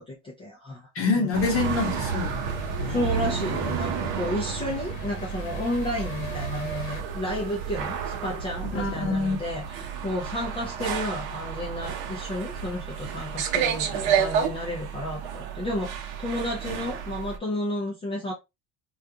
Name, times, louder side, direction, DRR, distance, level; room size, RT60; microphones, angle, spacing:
voice 1, 0.0-0.8 1.1-1.3 2.8-18.3, left 1 dB, 15° left, 0.4 m, -32 dB
voice 2, 0.9-2.5 2.8-3.3 8.7-9.4, left 3 dB, 35° left, 1.0 m, -26 dB
sound 1, 1.3-17.4, right 7 dB, 65° right, 0.7 m, -31 dB
sound 2, 1.8-7.0, left 2 dB, 70° left, 0.9 m, -41 dB
2.4 x 2.3 x 2.6 m
cardioid pair, 155°, 38 cm